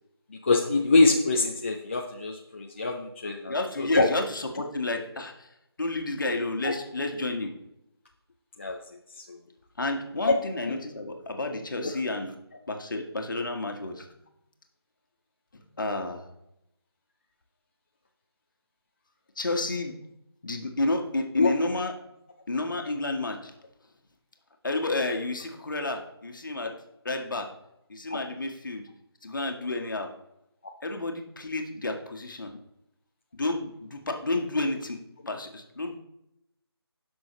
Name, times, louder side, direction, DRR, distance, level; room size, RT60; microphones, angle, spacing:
voice 1, 0.3-4.1 6.6-6.7 8.6-8.8 9.2-9.4 10.2-10.3 21.3-21.5, left 3 dB, 30° left, 1 dB, 0.6 m, -24 dB
voice 2, 3.4-5.5 5.8-7.5 9.8-12.3 12.7-14.1 15.5-16.2 19.4-19.9 20.4-21.9 22.5-23.5 24.6-26.7 27.0-27.5 27.9-28.8 29.2-30.1 30.8-32.5 33.3-35.0 35.3-36.0, left 2 dB, 50° left, 4 dB, 1.5 m, -31 dB
17.0 x 6.2 x 3.1 m, 0.81 s
figure-of-eight pair, 155°, 14 cm